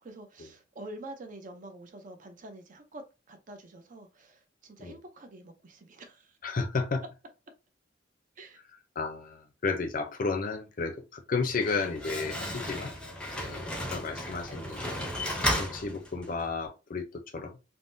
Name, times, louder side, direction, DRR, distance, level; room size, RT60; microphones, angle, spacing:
voice 1, 0.0-6.4 8.4-8.6 12.2-12.6 13.4-13.7, right 1 dB, 45° right, 0.5 m, -47 dB
voice 2, 6.4-7.0 9.0-12.9 13.4-15.1 15.5-17.6, left 4 dB, 45° left, 0.5 m, -33 dB
Slam, 11.4-16.5, left 1 dB, 5° left, 0.6 m, -34 dB
3.5 x 2.1 x 2.6 m
head